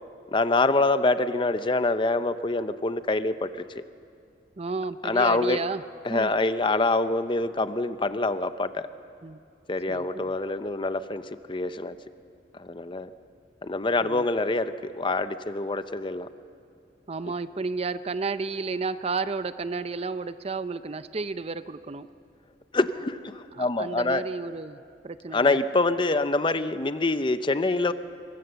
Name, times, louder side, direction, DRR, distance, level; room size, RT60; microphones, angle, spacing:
voice 1, 0.3-3.8 5.0-5.6 6.0-8.9 9.7-12.0 12.5-13.1 13.6-16.3 22.7-24.2 25.3-27.9, left 2 dB, 25° left, 12 dB, 0.6 m, -25 dB
voice 2, 4.6-5.8 6.1-6.3 9.2-9.4 9.9-10.3 14.0-14.3 17.1-22.1 23.6-25.6, right 4 dB, 35° right, 13 dB, 0.5 m, -32 dB
23.0 x 23.0 x 6.9 m, 2.4 s
head